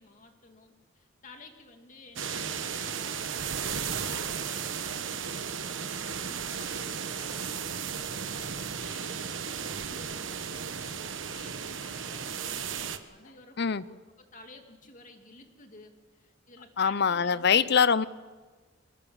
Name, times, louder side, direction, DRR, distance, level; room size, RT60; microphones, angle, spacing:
voice 1, 0.0-9.3 9.8-18.0, left 3 dB, 40° left, 4 dB, 2.6 m, -53 dB
sound 1, 2.2-13.0, right 7 dB, 70° right, 1.2 m, -35 dB
voice 2, 16.8-18.1, left 6 dB, 60° left, 17 dB, 0.7 m, -23 dB
23.5 x 19.0 x 7.3 m, 1.4 s
head